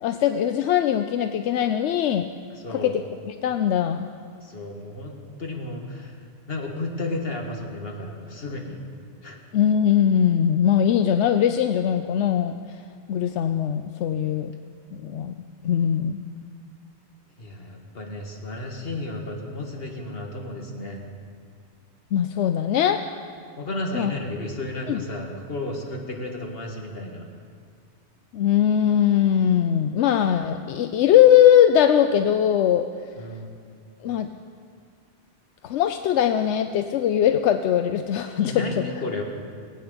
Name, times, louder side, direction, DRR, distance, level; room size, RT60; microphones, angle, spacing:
voice 1, 0.0-2.3 2.7-3.0 3.3-4.1 9.5-12.5 13.1-14.5 14.9-15.3 15.6-16.2 22.1-23.0 23.9-24.1 24.9-25.0 28.3-32.9 34.0-34.3 35.6-38.6, left 10 dB, 85° left, 8 dB, 0.9 m, -20 dB
voice 2, 2.6-2.9 4.4-6.2 6.5-8.8 9.2-9.4 17.4-21.0 23.6-27.3 33.2-33.6 38.4-39.2, left 2 dB, 60° left, 1 dB, 2.0 m, -33 dB
20.0 x 8.7 x 6.9 m, 2.1 s
omnidirectional pair, 1.1 m